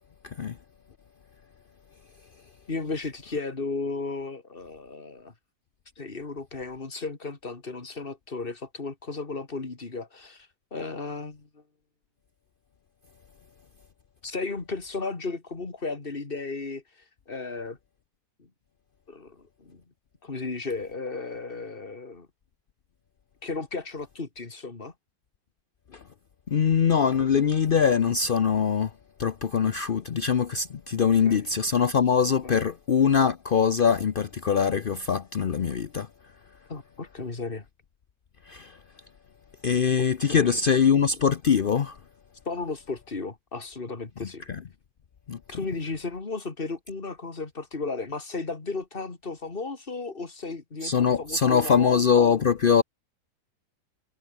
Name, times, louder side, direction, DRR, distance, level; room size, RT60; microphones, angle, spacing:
voice 1, 0.2-0.6 25.9-26.0 26.5-28.9 29.2-36.1 38.5-38.8 39.6-42.0 44.2-44.6 45.3-45.6 50.8-52.8, left 7 dB, 60° left, 0.5 m, -23 dB
voice 2, 2.7-5.3 6.0-11.5 14.2-16.8 17.3-17.8 19.1-19.8 20.2-22.3 23.4-24.9 31.3-31.4 32.4-32.6 36.7-37.6 40.0-40.6 42.5-44.5 45.5-52.3, left 3 dB, 30° left, 2.5 m, -34 dB
omnidirectional pair, 2.0 m